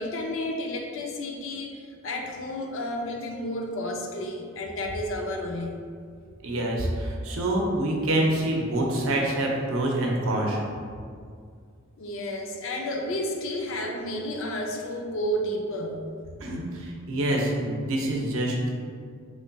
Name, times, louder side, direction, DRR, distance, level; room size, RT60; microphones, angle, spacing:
voice 1, 0.0-5.8 12.0-16.0, left 1 dB, 65° left, 1 dB, 0.4 m, -31 dB
voice 2, 6.4-10.6 16.4-18.7, right 1 dB, 75° right, -1 dB, 0.6 m, -26 dB
3.8 x 3.2 x 2.2 m, 2.1 s
head